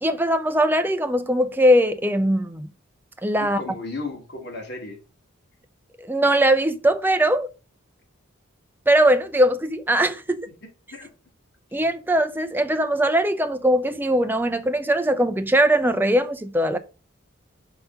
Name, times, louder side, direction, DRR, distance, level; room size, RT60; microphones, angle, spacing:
voice 1, 0.0-2.7 3.2-3.6 6.0-7.5 8.9-10.5 11.7-16.8, right 1 dB, 10° right, 0.5 m, -20 dB
voice 2, 3.4-5.0 10.5-11.1, left 3 dB, 50° left, 2.1 m, -35 dB
5.4 x 4.0 x 5.7 m
head